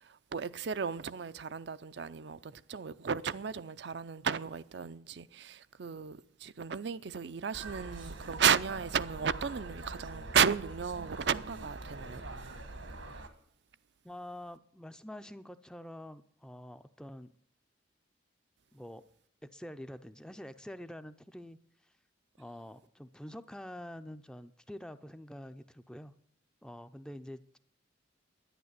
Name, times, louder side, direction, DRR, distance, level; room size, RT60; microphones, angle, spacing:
voice 1, 0.0-12.2, right 7 dB, 60° right, 0.5 m, -33 dB
sound 1, 7.5-13.3, right 2 dB, 80° right, 1.6 m, -44 dB
voice 2, 14.0-17.3 18.7-19.0 19.5-21.9 22.4-26.1 26.6-27.6, left 1 dB, 5° left, 0.5 m, -46 dB
11.0 x 9.9 x 8.1 m
head